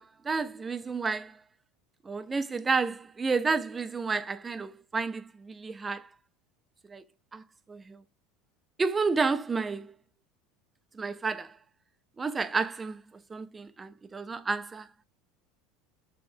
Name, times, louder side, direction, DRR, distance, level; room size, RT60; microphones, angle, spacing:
voice 1, 0.0-1.4 2.0-6.1 6.9-7.0 7.3-7.4 7.7-8.0 8.8-9.9 10.9-11.6 12.2-13.0 13.3-14.9, right 4 dB, 15° right, 0.3 m, -31 dB
3.7 x 2.9 x 2.5 m
supercardioid pair, 125°, 0 cm